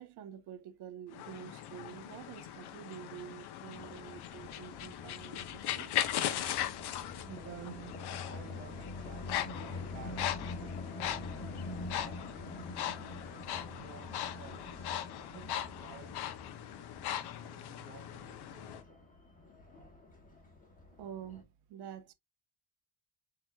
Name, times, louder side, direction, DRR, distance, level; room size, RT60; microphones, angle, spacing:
voice 1, 0.0-5.9 21.0-22.1, right 9 dB, 60° right, 0.9 m, -48 dB
sound 1, 1.1-18.8, left 11 dB, 55° left, 0.7 m, -39 dB
sound 2, 3.7-21.4, left 3 dB, 20° left, 1.3 m, -46 dB
voice 2, 6.9-11.5 12.0-16.3 17.4-18.8, right 7 dB, 25° right, 0.8 m, -53 dB
7.6 x 2.9 x 2.3 m
cardioid pair, 180°, 46 cm